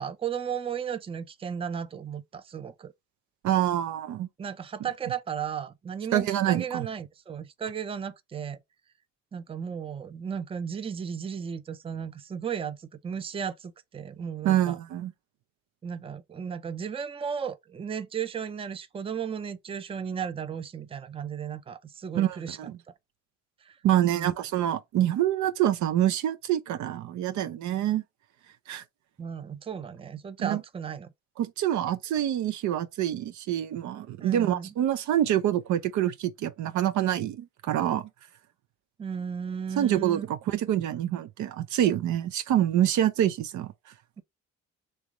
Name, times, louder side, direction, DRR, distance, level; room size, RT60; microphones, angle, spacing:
voice 1, 0.0-2.9 4.4-8.6 9.3-14.8 15.8-22.9 23.6-23.8 24.1-24.3 29.2-31.1 34.2-34.7 39.0-40.3 44.2-44.3, right 7 dB, 20° right, 0.4 m, -35 dB
voice 2, 3.4-4.3 6.1-6.9 14.4-15.1 22.1-22.7 23.8-28.0 28.7-28.8 30.4-30.6 31.4-38.1 39.8-43.7, right 11 dB, 75° right, 0.6 m, -26 dB
3.3 x 3.1 x 3.6 m
cardioid pair, 90°, 30 cm